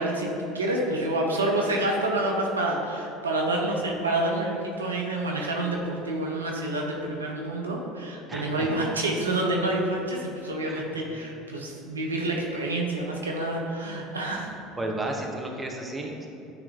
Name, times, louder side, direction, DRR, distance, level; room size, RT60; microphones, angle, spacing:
voice 1, 0.0-14.5, right 1 dB, 90° right, -1 dB, 0.8 m, -28 dB
voice 2, 8.3-8.7 10.6-11.3 14.8-16.3, right 1 dB, 15° right, 1 dB, 1.1 m, -33 dB
9.7 x 3.4 x 3.7 m, 2.9 s
hypercardioid pair, 70°, 0 cm